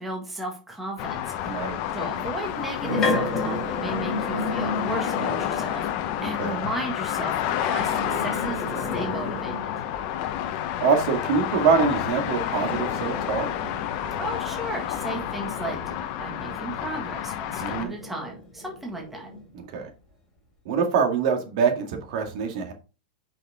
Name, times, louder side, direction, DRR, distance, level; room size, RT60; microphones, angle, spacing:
voice 1, 0.0-9.7 14.2-15.8 16.2-19.3, right 1 dB, 5° right, 0 dB, 1.8 m, -35 dB
sound 1, 1.0-17.8, left 11 dB, 40° left, 0.9 m, -30 dB
voice 2, 1.5-1.8 6.2-6.6 10.8-13.5 17.6-17.9 19.7-19.9 20.7-22.7, right 5 dB, 50° right, 4 dB, 2.0 m, -24 dB
sound 2, 2.4-5.7 7.7-10.0 12.0-17.2 17.7-19.5, left 2 dB, 15° left, 3.3 m, -32 dB
8.0 x 5.7 x 3.6 m, 0.31 s
supercardioid pair, 160°, 4 cm